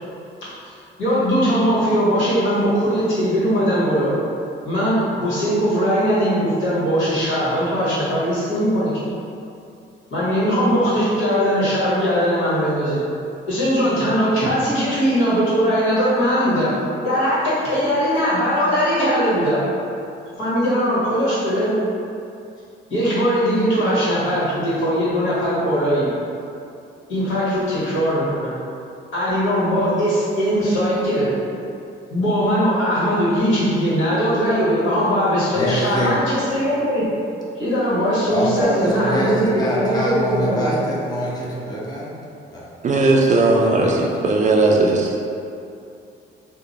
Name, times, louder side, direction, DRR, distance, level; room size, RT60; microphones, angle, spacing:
voice 1, 1.0-4.1 4.6-8.9 10.1-13.0 13.5-16.7 17.0-19.6 20.4-21.8 22.9-26.1 27.1-28.5 29.1-31.3 32.1-37.1 37.6-40.7, equal, 75° left, -10 dB, 1.5 m, -20 dB
voice 2, 35.5-36.2 38.3-42.1 42.5-42.7 43.0-43.1 43.4-44.1, equal, 20° left, -5 dB, 0.7 m, -24 dB
voice 3, 42.8-45.2, right 2 dB, 40° right, 0 dB, 0.4 m, -17 dB
2.9 x 2.2 x 4.0 m, 2.6 s
cardioid pair, 90°, 20 cm